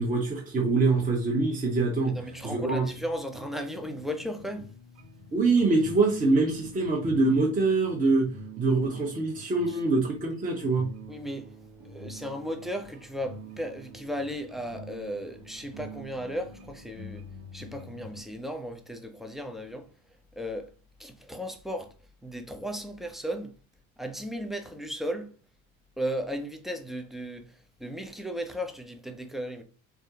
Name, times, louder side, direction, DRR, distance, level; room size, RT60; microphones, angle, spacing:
voice 1, 0.0-2.1 2.4-2.9 5.3-8.3 8.6-10.9, right 3 dB, 20° right, 1.0 m, -24 dB
sound 1, 1.4-18.2, right 1 dB, 60° right, 1.3 m, -46 dB
voice 2, 2.1-4.7 9.7-9.8 11.1-11.5 11.8-17.2 17.5-19.9 20.3-20.7 21.0-21.9 22.2-23.5 24.0-25.3 26.0-29.6, equal, ahead, 0.4 m, -35 dB
3.6 x 3.4 x 2.8 m
figure-of-eight pair, 65°, 43 cm